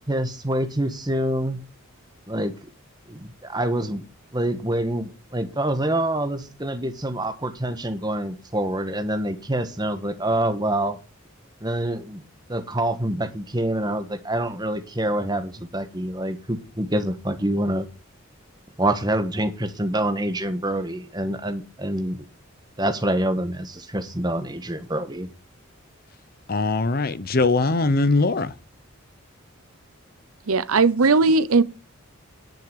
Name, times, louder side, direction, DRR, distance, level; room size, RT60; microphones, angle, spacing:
voice 1, 0.1-1.6 2.3-2.7 3.1-4.0 4.3-11.0 11.6-12.2 12.5-17.9 18.8-22.2 22.8-25.3, right 1 dB, 20° right, 1.4 m, -26 dB
voice 2, 26.5-28.5, left 3 dB, 45° left, 0.7 m, -21 dB
voice 3, 30.5-31.6, right 4 dB, 85° right, 0.8 m, -18 dB
10.5 x 5.9 x 7.8 m
head